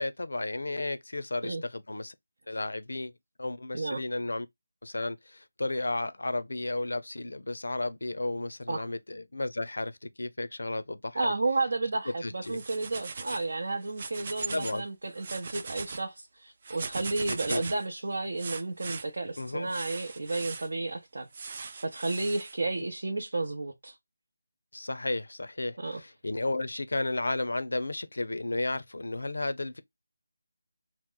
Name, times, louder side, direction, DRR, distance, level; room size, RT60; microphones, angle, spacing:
voice 1, 0.0-2.1 2.5-3.1 3.4-4.5 4.8-11.3 12.1-12.6 14.5-14.9 17.3-17.6 19.4-19.7 24.7-29.8, left 2 dB, 85° left, 0.4 m, -33 dB
voice 2, 11.1-21.5 21.8-23.9 25.8-26.0, right 2 dB, 70° right, 0.7 m, -32 dB
sound 1, 12.4-13.5 13.8-14.8 15.1-16.0 16.6-17.9 18.4-19.0 19.7-20.7 21.3-22.5, right 4 dB, 35° right, 0.3 m, -39 dB
2.9 x 2.0 x 3.7 m
figure-of-eight pair, 170°, 0 cm